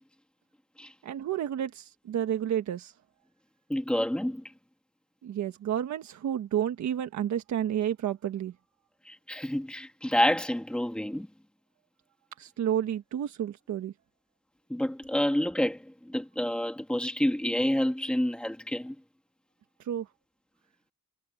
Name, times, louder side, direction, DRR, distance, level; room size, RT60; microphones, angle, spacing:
voice 1, 1.0-2.9 5.2-8.5 12.4-13.9 19.9-20.0, right 10 dB, 60° right, 1.4 m, -30 dB
voice 2, 3.7-4.4 9.1-11.3 14.7-19.0, left 1 dB, 5° left, 2.3 m, -28 dB
cardioid pair, 160°, 32 cm